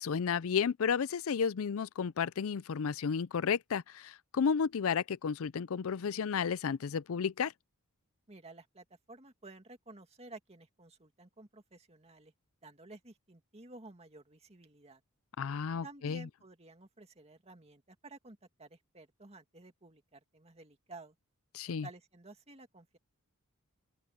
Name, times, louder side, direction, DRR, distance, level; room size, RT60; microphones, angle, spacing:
voice 1, 0.0-7.5 15.4-16.3 21.5-21.9, left 6 dB, 65° left, 0.4 m, -32 dB
voice 2, 8.3-12.3 12.6-15.0 15.8-21.1 21.7-23.0, right 2 dB, 30° right, 2.2 m, -53 dB
open air
head